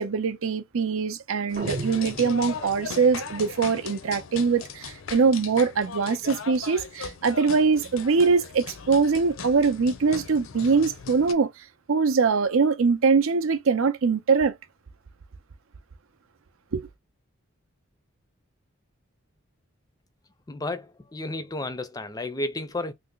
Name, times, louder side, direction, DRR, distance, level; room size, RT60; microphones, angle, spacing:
voice 1, 0.0-11.5 11.9-14.5 16.7-16.9, right 5 dB, 75° right, 0.5 m, -23 dB
sound 1, 1.5-11.3, left 6 dB, 70° left, 0.5 m, -38 dB
sound 2, 1.6-3.0, right 2 dB, 35° right, 0.6 m, -36 dB
voice 2, 20.5-22.9, left 2 dB, 15° left, 0.4 m, -32 dB
3.3 x 2.0 x 3.7 m
head